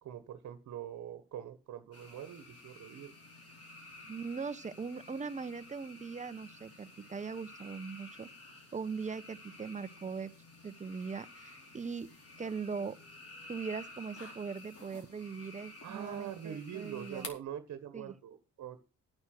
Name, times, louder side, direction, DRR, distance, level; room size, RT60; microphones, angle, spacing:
voice 1, 0.0-3.1 15.8-18.8, right 9 dB, 65° right, 1.3 m, -44 dB
sound 1, 1.9-17.3, left 2 dB, 50° left, 4.6 m, -52 dB
voice 2, 4.0-10.3 10.6-12.1 12.4-13.0 13.5-17.3 17.9-18.1, right 5 dB, 25° right, 0.8 m, -40 dB
9.7 x 9.6 x 6.0 m
cardioid pair, 90°, 30 cm